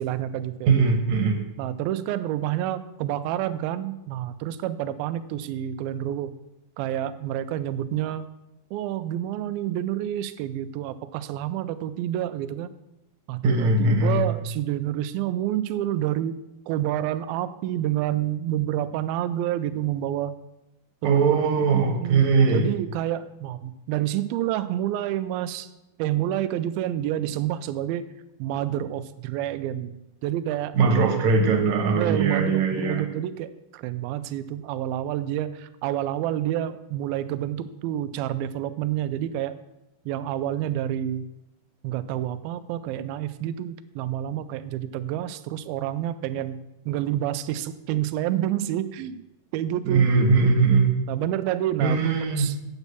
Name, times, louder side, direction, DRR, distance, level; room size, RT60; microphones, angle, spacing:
voice 1, 0.0-0.7 1.6-6.3 6.8-8.3 8.7-12.7 13.3-16.4 16.7-20.3 21.0-25.7 26.0-28.1 28.4-30.0 30.2-30.8 31.9-39.6 40.1-41.2 41.8-46.6 46.9-49.2 49.5-50.5 51.1-52.6, right 12 dB, 85° right, 11 dB, 2.4 m, -28 dB
voice 2, 0.7-1.4 13.4-14.2 21.0-22.7 30.7-33.0 49.9-50.9 51.8-52.5, right 4 dB, 60° right, 4 dB, 2.2 m, -20 dB
8.2 x 8.2 x 6.8 m, 0.91 s
omnidirectional pair, 4.3 m